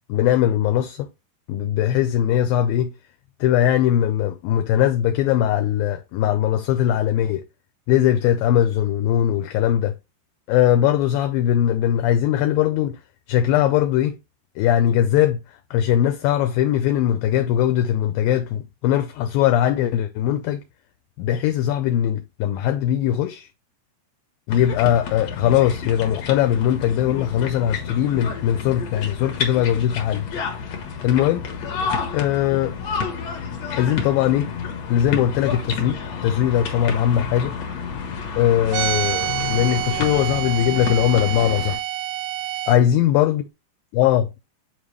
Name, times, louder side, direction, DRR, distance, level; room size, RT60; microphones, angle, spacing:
voice 1, 0.1-1.1 1.5-2.9 3.4-7.4 7.9-9.9 10.5-13.0 13.3-14.2 14.6-15.4 15.7-20.6 21.2-23.5 24.5-30.2 31.0-31.5 32.1-32.7 33.7-34.5 34.9-37.5 38.4-41.8 42.7-43.4 43.9-44.3, left 11 dB, 80° left, 2.2 m, -20 dB
sound 1, 24.5-41.8, left 5 dB, 60° left, 1.8 m, -30 dB
sound 2, 38.7-42.8, right 14 dB, 80° right, 2.4 m, -27 dB
8.0 x 4.0 x 3.2 m
omnidirectional pair, 4.5 m